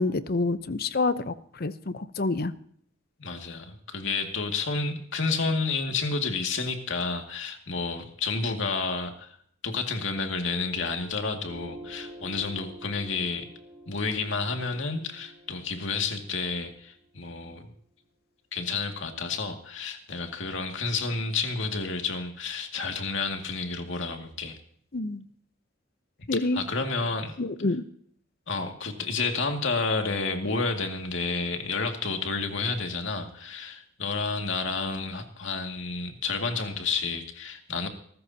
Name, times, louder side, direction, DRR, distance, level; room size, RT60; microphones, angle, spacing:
voice 1, 0.0-2.5 24.9-25.2 26.3-26.6 27.4-27.8, left 3 dB, 50° left, 13 dB, 0.8 m, -27 dB
voice 2, 3.2-9.4 9.6-13.5 13.9-17.7 18.5-24.6 26.5-27.3 28.5-37.9, left 4 dB, 70° left, 4 dB, 2.2 m, -30 dB
Piano, 10.5-17.5, right 1 dB, 20° right, 7.3 m, -48 dB
23.5 x 13.5 x 2.8 m, 0.63 s
head